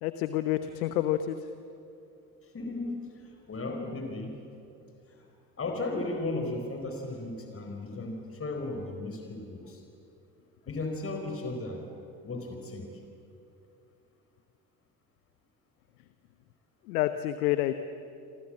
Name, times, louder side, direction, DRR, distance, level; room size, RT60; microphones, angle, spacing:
voice 1, 0.0-1.4 16.9-17.7, left 13 dB, 70° left, 10 dB, 1.2 m, -28 dB
voice 2, 2.4-4.4 5.1-5.2 5.6-9.8 10.7-11.8 12.2-12.9, left 2 dB, 30° left, 3 dB, 4.5 m, -35 dB
27.5 x 26.5 x 7.7 m, 2.7 s
figure-of-eight pair, 60°, 47 cm